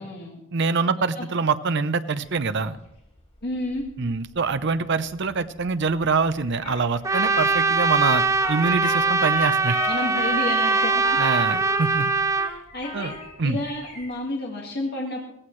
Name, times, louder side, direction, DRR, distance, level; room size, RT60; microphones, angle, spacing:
voice 1, 0.0-0.4 0.9-1.3 3.4-3.9 9.9-11.0 12.4-13.2 13.4-15.3, left 2 dB, 55° left, -1 dB, 2.0 m, -31 dB
voice 2, 0.5-2.8 4.0-8.2 8.5-9.8 11.2-12.1 12.9-13.6, right 4 dB, 60° right, 11 dB, 0.7 m, -24 dB
sound 1, 2.2-14.2, left 2 dB, 35° left, 3.0 m, -51 dB
Trumpet, 6.6-6.8 7.1-13.3, left 4 dB, 85° left, 3.2 m, -35 dB
Trumpet 2, 7.0-12.5, right 3 dB, 15° right, 0.5 m, -22 dB
17.0 x 14.5 x 3.3 m, 0.80 s
head